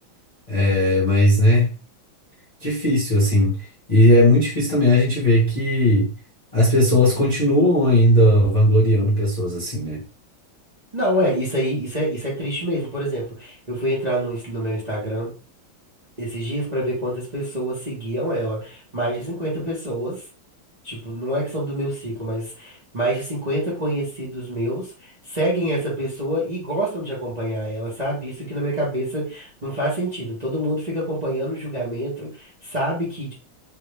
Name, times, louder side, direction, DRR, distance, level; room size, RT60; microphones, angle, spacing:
voice 1, 0.5-1.7 2.6-3.6 3.9-6.1 6.5-10.0, left 1 dB, 30° left, -6 dB, 0.8 m, -17 dB
voice 2, 10.9-15.3 16.2-20.2 20.8-33.3, right 1 dB, 25° right, -6 dB, 0.9 m, -26 dB
3.6 x 2.5 x 3.2 m, 0.36 s
omnidirectional pair, 2.2 m